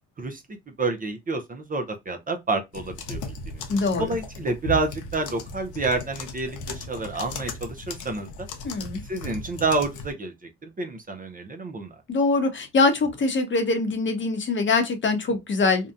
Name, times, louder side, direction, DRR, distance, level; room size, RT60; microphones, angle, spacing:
voice 1, 0.2-3.2 3.5-3.6 4.0-8.3 9.1-12.0, right 3 dB, 30° right, 0.5 m, -29 dB
sound 1, 2.7-10.1, left 3 dB, 85° left, 0.6 m, -37 dB
voice 2, 3.7-4.1 8.6-9.0 12.1-15.9, left 3 dB, 40° left, 0.8 m, -23 dB
2.7 x 2.1 x 2.4 m
cardioid pair, 90°, 30 cm